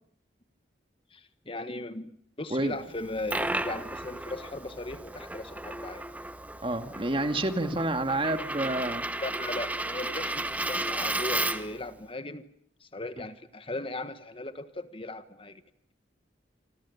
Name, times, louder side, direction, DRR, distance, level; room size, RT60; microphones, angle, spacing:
voice 1, 1.1-6.0 9.2-12.5 12.8-15.6, left 2 dB, 30° left, 11 dB, 1.3 m, -38 dB
Coin (dropping), 2.9-11.8, right 2 dB, 10° right, 1.1 m, -34 dB
voice 2, 6.6-9.1, right 1 dB, 30° right, 7 dB, 2.1 m, -28 dB
27.5 x 26.0 x 7.2 m, 0.68 s
head